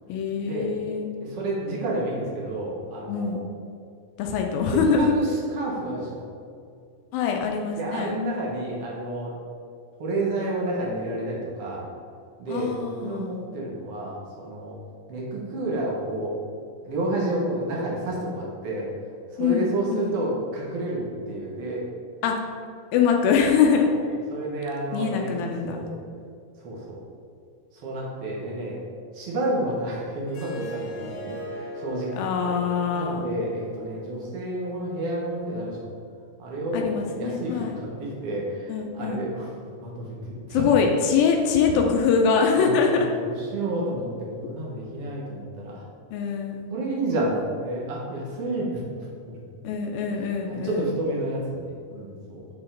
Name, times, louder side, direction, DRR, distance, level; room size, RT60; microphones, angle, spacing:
voice 1, 0.1-1.1 3.1-3.5 4.2-5.1 7.1-8.1 12.5-13.4 19.4-20.2 22.2-22.4 22.9-23.9 24.9-25.9 32.2-33.2 36.7-37.7 38.7-39.2 40.5-43.1 46.1-46.7 49.6-50.9, left 6 dB, 80° left, 2 dB, 2.2 m, -23 dB
voice 2, 1.2-3.4 4.7-6.2 7.7-9.3 10.0-11.8 12.4-14.7 15.1-16.3 16.8-18.9 19.3-21.8 23.9-24.0 24.3-25.3 25.7-25.9 26.6-27.0 27.7-28.8 29.1-32.6 32.9-35.9 36.4-40.6 41.7-41.8 42.6-44.1 44.4-45.8 46.7-48.8 49.3-49.4 50.1-52.5, right 1 dB, 80° right, -4 dB, 1.3 m, -30 dB
Harp, 30.3-35.4, right 1 dB, 60° left, 2.1 m, -39 dB
8.7 x 4.2 x 3.8 m, 2.3 s
omnidirectional pair, 4.4 m